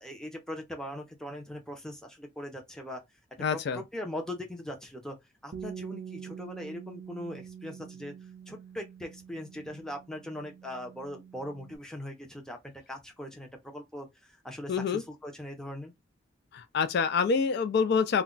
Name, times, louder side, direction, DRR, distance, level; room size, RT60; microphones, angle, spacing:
voice 1, 0.0-3.0 3.5-5.2 5.4-8.1 8.5-15.9, left 1 dB, 5° left, 0.6 m, -40 dB
voice 2, 3.4-3.8 14.7-15.0 16.5-18.2, left 5 dB, 60° left, 0.3 m, -26 dB
Bass guitar, 5.5-11.8, right 8 dB, 45° right, 0.3 m, -45 dB
2.2 x 2.2 x 3.7 m
head